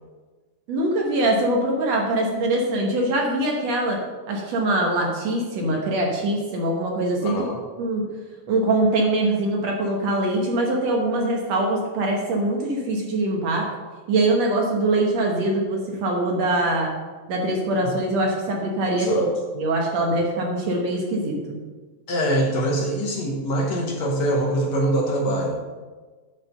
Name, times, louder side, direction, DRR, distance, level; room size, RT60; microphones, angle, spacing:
voice 1, 0.7-4.0 4.3-7.4 7.8-8.1 8.5-13.7 14.1-16.9 17.3-19.1 19.6-21.6, right 2 dB, 60° right, 0 dB, 2.1 m, -23 dB
voice 2, 7.2-7.6 17.8-17.9 19.0-19.3 22.1-25.6, right 1 dB, 60° left, -1 dB, 2.1 m, -23 dB
9.7 x 4.9 x 6.7 m, 1.4 s
omnidirectional pair, 3.8 m